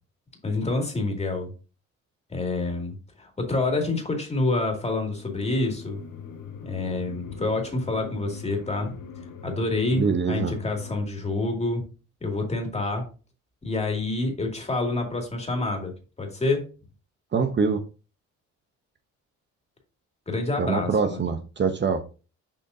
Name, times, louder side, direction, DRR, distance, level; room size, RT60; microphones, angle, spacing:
voice 1, 0.4-1.5 2.3-6.0 6.6-9.0 9.4-11.8 12.2-13.1 13.6-15.9 16.2-16.7 20.3-21.2, left 2 dB, 20° left, 2.2 m, -27 dB
sound 1, 5.1-11.0, left 6 dB, 85° left, 1.3 m, -42 dB
voice 2, 9.9-10.5 17.3-17.8 20.6-22.0, right 5 dB, 35° right, 0.8 m, -24 dB
6.9 x 5.2 x 2.6 m
cardioid pair, 90°, 30 cm